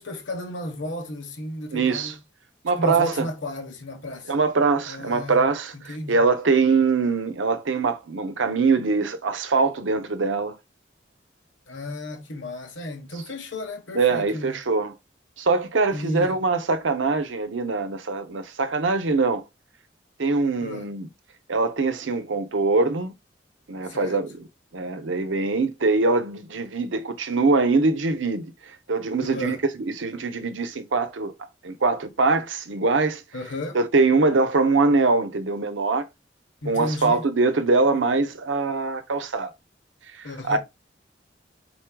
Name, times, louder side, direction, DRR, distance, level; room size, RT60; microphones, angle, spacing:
voice 1, 0.0-2.2 2.8-4.4 4.9-5.5 5.7-6.2 11.7-14.6 15.9-16.3 20.6-20.9 23.8-24.2 29.2-29.6 33.3-33.8 36.6-37.3 40.2-40.6, left 1 dB, 80° left, 1.1 m, -33 dB
voice 2, 1.7-2.1 2.6-3.3 4.3-5.7 6.1-10.6 13.9-14.9 15.4-19.4 20.2-21.1 21.5-23.1 23.7-24.4 24.7-28.4 28.9-31.3 31.6-33.2 33.7-36.0 36.7-39.5 40.4-40.6, right 3 dB, 90° right, 0.7 m, -23 dB
4.6 x 4.2 x 2.2 m
head